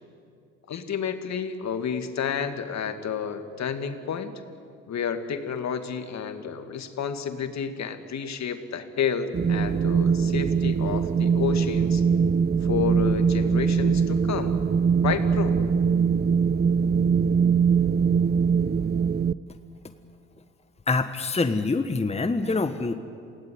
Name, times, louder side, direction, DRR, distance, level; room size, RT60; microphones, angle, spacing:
voice 1, 0.7-4.4 4.9-12.0 12.6-14.6 15.0-15.6, left 7 dB, 50° left, 8 dB, 2.3 m, -30 dB
Wind, 9.3-19.3, right 6 dB, 30° right, 0.8 m, -22 dB
voice 2, 20.9-22.9, left 3 dB, 20° left, 8 dB, 1.4 m, -25 dB
28.0 x 17.5 x 9.6 m, 2.4 s
hypercardioid pair, 55°, 34 cm